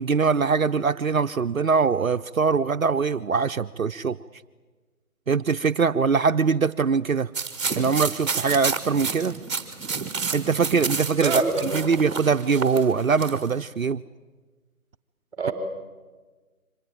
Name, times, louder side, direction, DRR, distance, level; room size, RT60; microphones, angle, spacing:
voice 1, 0.0-4.2 5.3-7.3 7.7-9.4 10.3-14.0, right 5 dB, 65° right, 9 dB, 0.8 m, -22 dB
sound 1, 7.3-13.5, right 5 dB, 20° right, 1.8 m, -30 dB
voice 2, 11.2-12.0 15.4-15.5, right 3 dB, ahead, 4 dB, 3.5 m, -27 dB
25.0 x 19.0 x 8.9 m, 1.3 s
figure-of-eight pair, 155°, 44 cm